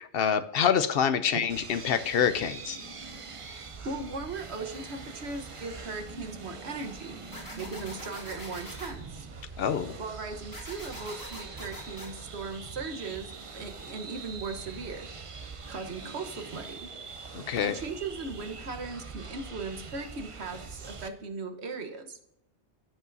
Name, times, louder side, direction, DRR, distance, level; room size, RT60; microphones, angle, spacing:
voice 1, 0.1-2.8 9.6-9.9 17.3-17.8, left 8 dB, 65° left, 11 dB, 0.8 m, -26 dB
sound 1, 1.5-21.1, right 4 dB, 35° right, 0.6 m, -43 dB
voice 2, 3.8-7.2 7.6-9.3 10.0-15.1 15.7-16.9 17.6-22.2, right 4 dB, 75° right, 6 dB, 1.4 m, -38 dB
sound 2, 7.3-8.9 10.5-12.1, left 1 dB, 20° left, 1.9 m, -43 dB
16.0 x 5.4 x 2.6 m, 0.81 s
omnidirectional pair, 1.1 m